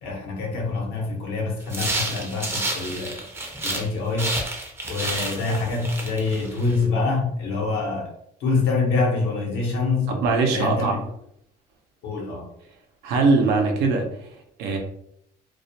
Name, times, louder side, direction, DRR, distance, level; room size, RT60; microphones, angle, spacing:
voice 1, 0.0-3.2 3.6-4.3 4.9-8.1 8.4-10.1 10.5-11.0 12.0-12.4, left 3 dB, 80° left, -1 dB, 0.8 m, -25 dB
sound 1, 1.7-3.9 4.2-6.8, right 2 dB, 15° right, 0.5 m, -30 dB
voice 2, 10.1-11.0 13.0-14.8, right 3 dB, 90° right, 3 dB, 0.6 m, -22 dB
2.3 x 2.1 x 2.7 m, 0.73 s
cardioid pair, 110°, 17 cm